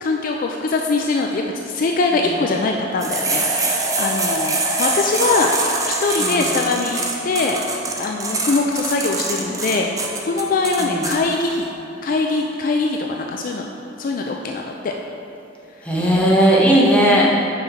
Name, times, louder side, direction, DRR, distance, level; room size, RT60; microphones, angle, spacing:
voice 1, 0.0-5.5 5.9-9.9 10.2-11.6 12.0-13.7 14.0-14.9, left 3 dB, 45° left, 1 dB, 0.3 m, -22 dB
sound 1, 3.0-11.2, right 3 dB, 15° right, 0.6 m, -23 dB
voice 2, 6.2-6.5 10.8-11.1 15.8-17.2, right 1 dB, 5° left, -5 dB, 0.9 m, -16 dB
5.6 x 5.3 x 4.5 m, 2.8 s
head